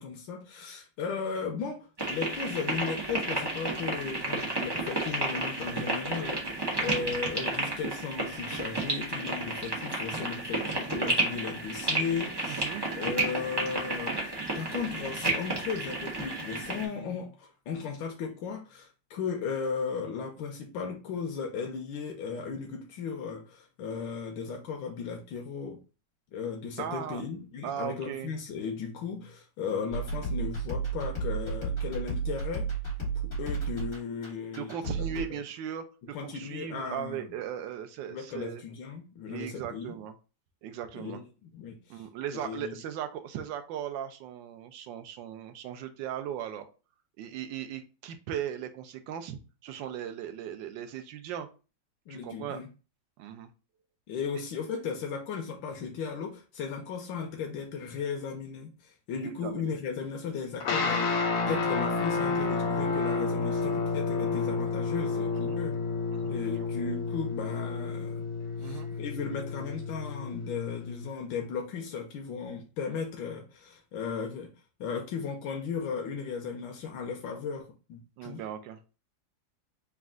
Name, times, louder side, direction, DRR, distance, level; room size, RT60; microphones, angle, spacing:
voice 1, 0.0-12.7 12.9-25.8 26.3-32.7 33.2-35.2 36.1-37.3 38.1-40.0 40.9-42.0 42.3-42.7 52.1-52.7 54.1-61.2 61.5-65.8 66.3-68.3 68.6-74.5 74.8-78.4, left 6 dB, 90° left, 1.4 m, -36 dB
sound 1, 2.0-16.9, right 2 dB, 25° right, 0.5 m, -32 dB
voice 2, 12.4-12.8 26.8-27.2 27.6-28.3 34.5-38.6 39.3-40.1 40.6-41.2 41.9-46.7 47.2-51.5 52.1-52.6 53.2-53.5 59.2-59.7 65.3-65.6 66.1-66.3 68.6-68.9 78.2-78.9, right 9 dB, 85° right, 1.3 m, -38 dB
sound 2, 29.9-35.2, right 4 dB, 45° left, 2.1 m, -32 dB
sound 3, 60.6-71.1, left 4 dB, 65° left, 0.8 m, -30 dB
4.2 x 2.4 x 3.6 m
omnidirectional pair, 2.0 m